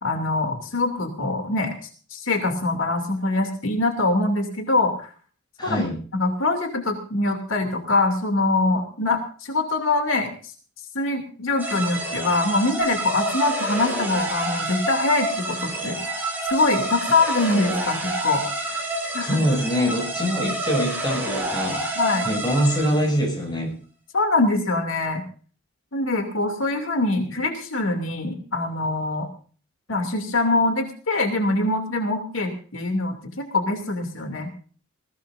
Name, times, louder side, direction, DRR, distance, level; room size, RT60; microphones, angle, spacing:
voice 1, 0.0-1.7 2.1-5.1 5.6-5.8 6.1-10.3 10.9-16.0 16.4-18.4 19.1-19.4 22.0-22.3 24.1-25.2 25.9-29.3 29.9-34.5, left 2 dB, 85° left, 4 dB, 2.7 m, -23 dB
voice 2, 5.6-6.0 18.6-18.8 19.2-21.8 22.2-23.7, equal, 20° left, 1 dB, 7.5 m, -24 dB
sound 1, 11.6-23.3, right 2 dB, 10° right, 5.9 m, -28 dB
20.5 x 17.0 x 2.6 m, 0.41 s
head